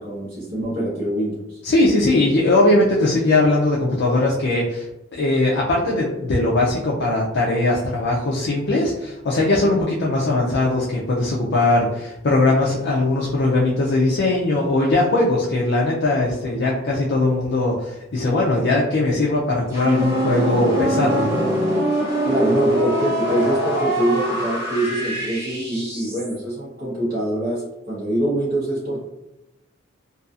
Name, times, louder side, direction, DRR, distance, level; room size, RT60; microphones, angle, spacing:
voice 1, 0.0-1.6 22.2-29.0, right 1 dB, 50° right, -9 dB, 0.9 m, -24 dB
voice 2, 1.6-4.9 5.1-21.4, left 2 dB, 55° left, -4 dB, 0.4 m, -20 dB
sound 1, 19.7-26.4, equal, 15° right, 0.9 m, -23 dB
2.6 x 2.3 x 2.4 m, 0.95 s
head